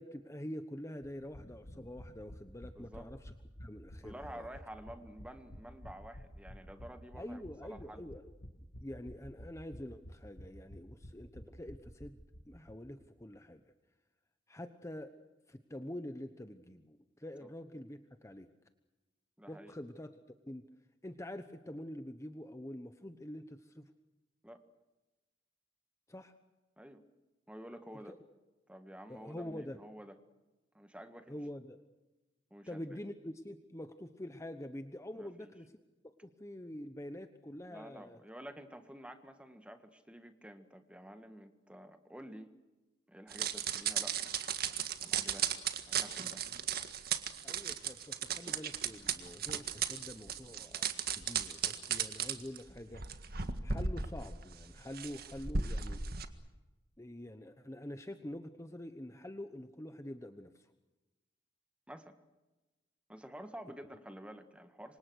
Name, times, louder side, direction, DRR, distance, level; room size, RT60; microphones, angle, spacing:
voice 1, 0.0-3.3 3.6-4.5 7.2-8.3 8.8-12.2 12.4-13.6 14.5-15.1 15.5-18.5 19.5-20.1 20.5-20.6 21.0-23.9 26.1-26.3 27.9-28.1 29.1-29.8 31.3-31.8 32.7-35.7 36.2-38.2 47.4-53.0 53.3-56.0 57.0-60.7, left 1 dB, 15° left, 8 dB, 1.0 m, -46 dB
sound 1, 1.0-12.7 13.0-13.1 13.3-13.4, equal, 60° left, 2.1 m, -51 dB
voice 2, 2.7-3.1 4.0-7.4 7.7-8.0 17.4-17.5 19.4-19.7 24.4-24.6 26.8-27.0 27.5-28.2 28.7-30.2 30.7-31.4 32.5-33.0 35.2-35.5 37.7-42.5 43.1-44.2 45.0-45.5 45.9-46.4 61.9-62.1 63.1-65.0, equal, 5° right, 8 dB, 1.7 m, -50 dB
sound 2, 43.3-56.3, right 7 dB, 55° right, 1.8 m, -36 dB
28.0 x 25.5 x 6.4 m, 1.1 s
head